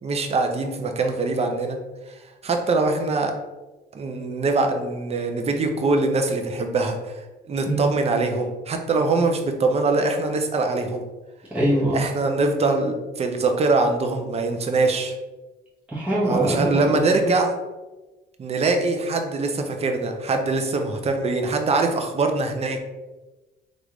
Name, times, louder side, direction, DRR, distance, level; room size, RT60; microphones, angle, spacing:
voice 1, 0.0-1.8 2.4-3.3 3.9-11.0 11.9-15.1 16.3-17.5 18.4-22.8, right 3 dB, 35° right, 5 dB, 0.5 m, -23 dB
voice 2, 11.5-12.0 15.9-17.3, right 1 dB, 5° right, -8 dB, 1.0 m, -23 dB
3.5 x 2.5 x 3.0 m, 1.1 s
cardioid pair, 85°, 19 cm